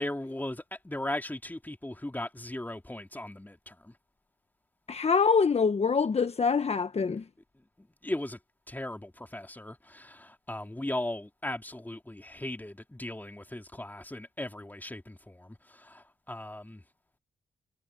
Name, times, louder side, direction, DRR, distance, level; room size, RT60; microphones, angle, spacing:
voice 1, 0.0-3.9 7.8-8.4 8.7-16.8, left 1 dB, 10° left, 3.3 m, -38 dB
voice 2, 4.9-7.2, left 5 dB, 45° left, 1.3 m, -25 dB
supercardioid pair, 50°, 15 cm